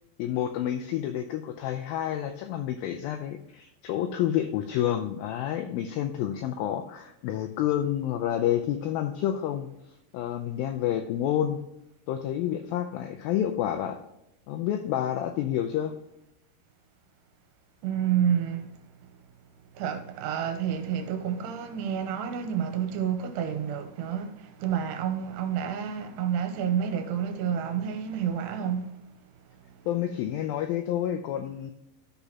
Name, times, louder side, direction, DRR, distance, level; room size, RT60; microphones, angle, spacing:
voice 1, 0.2-9.7 10.1-11.6 12.1-14.0 14.5-15.9 29.9-31.7, left 11 dB, 85° left, 2.1 m, -29 dB
voice 2, 17.8-18.7 19.7-29.0, right 8 dB, 80° right, 2.9 m, -29 dB
13.5 x 6.2 x 2.9 m
omnidirectional pair, 4.8 m